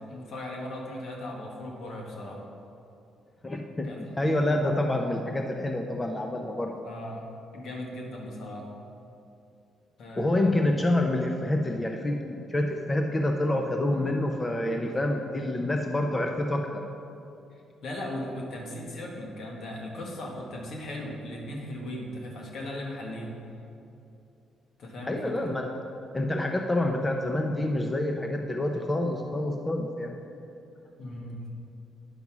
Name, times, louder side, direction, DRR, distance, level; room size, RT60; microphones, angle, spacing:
voice 1, 0.0-2.4 3.8-4.0 6.8-7.3 7.5-8.7 10.0-10.9 14.9-15.0 17.5-23.3 24.8-25.6 31.0-31.4, left 1 dB, 65° left, 0 dB, 1.6 m, -38 dB
voice 2, 3.4-6.7 10.2-16.8 25.1-25.7 26.1-30.1, left 1 dB, 20° left, 3 dB, 0.6 m, -27 dB
9.5 x 5.3 x 6.0 m, 2.7 s
cardioid pair, 90°, 0 cm